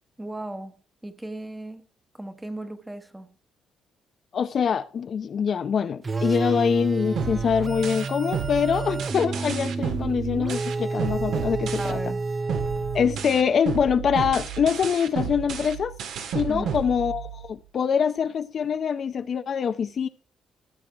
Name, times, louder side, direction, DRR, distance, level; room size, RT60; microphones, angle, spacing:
voice 1, 0.2-0.8 1.0-1.9 2.1-3.3 6.2-6.4 11.8-12.3 16.5-16.8, right 1 dB, 10° right, 1.1 m, -36 dB
voice 2, 4.3-12.0 12.9-15.9 16.3-20.1, left 7 dB, 45° left, 0.6 m, -24 dB
sound 1, 6.0-13.5, right 3 dB, 25° right, 0.5 m, -29 dB
sound 2, 7.2-12.2 12.5-17.5, right 8 dB, 75° right, 1.7 m, -32 dB
15.5 x 7.5 x 3.4 m
cardioid pair, 125°, 0 cm